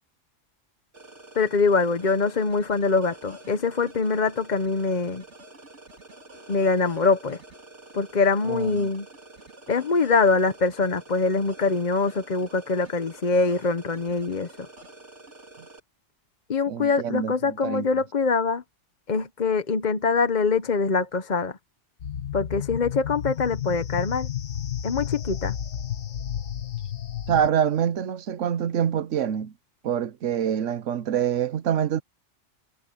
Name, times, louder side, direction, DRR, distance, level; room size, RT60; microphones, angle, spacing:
sound 1, 0.9-15.8, right 2 dB, 70° right, 3.6 m, -48 dB
voice 1, 1.4-5.2 6.5-7.4 7.9-9.1 9.7-14.5 16.5-18.6 19.1-21.6 22.3-24.3 24.8-25.5, left 4 dB, 40° left, 0.9 m, -24 dB
voice 2, 8.5-8.9 16.7-17.9 27.3-29.5 29.8-32.0, right 9 dB, 90° right, 1.2 m, -26 dB
sound 2, 22.0-27.5, left 10 dB, 85° left, 1.4 m, -32 dB
omnidirectional pair, 1.2 m